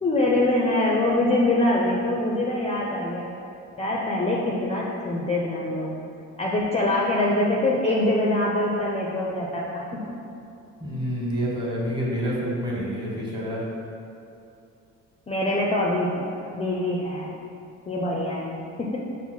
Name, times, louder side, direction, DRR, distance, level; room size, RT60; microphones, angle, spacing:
voice 1, 0.0-3.3 3.8-5.9 6.4-10.0 15.3-16.2 16.5-17.3 17.9-19.0, left 1 dB, 20° left, -3 dB, 0.5 m, -24 dB
voice 2, 10.8-13.6, equal, 15° right, -6 dB, 1.3 m, -28 dB
5.5 x 2.1 x 4.5 m, 2.7 s
cardioid pair, 90°, 30 cm